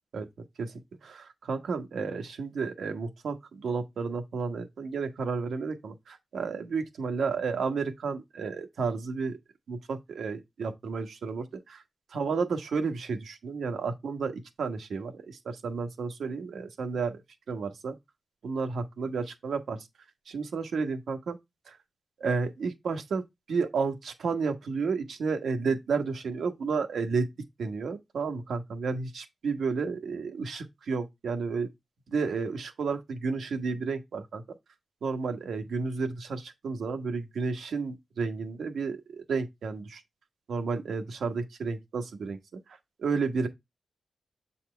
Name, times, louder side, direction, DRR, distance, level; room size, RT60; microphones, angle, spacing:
voice 1, 1.0-9.4 9.7-11.8 12.1-17.2 17.5-17.9 18.4-19.9 20.3-21.4 21.7-21.8 22.2-27.3 27.6-31.7 32.1-34.4 35.0-40.0 40.5-42.4 42.7-43.5, right 4 dB, 75° right, 1.1 m, -32 dB
7.7 x 4.2 x 3.3 m
wide cardioid pair, 165°, 0 cm